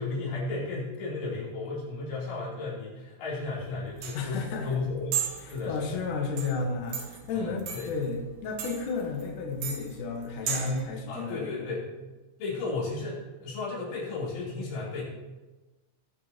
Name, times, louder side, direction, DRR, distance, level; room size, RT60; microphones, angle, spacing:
voice 1, 0.0-5.1 5.5-6.0 7.3-7.9 11.1-11.9 12.4-15.0, left 3 dB, 80° left, -7 dB, 6.1 m, -34 dB
sound 1, 3.4-10.8, right 8 dB, 70° right, 2.8 m, -37 dB
voice 2, 4.1-4.8 5.4-11.7, left 4 dB, 60° left, 1 dB, 2.5 m, -32 dB
20.0 x 7.3 x 3.1 m, 1.1 s
omnidirectional pair, 5.3 m